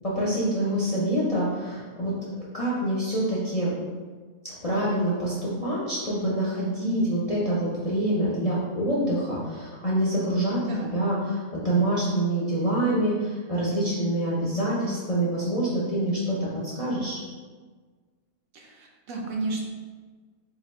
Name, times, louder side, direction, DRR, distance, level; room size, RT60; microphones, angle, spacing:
voice 1, 0.0-2.2 2.5-3.7 4.4-17.2, right 1 dB, 45° left, -8 dB, 0.4 m, -26 dB
voice 2, 18.5-19.6, right 2 dB, 70° right, 0 dB, 1.0 m, -32 dB
2.8 x 2.6 x 4.1 m, 1.4 s
omnidirectional pair, 1.5 m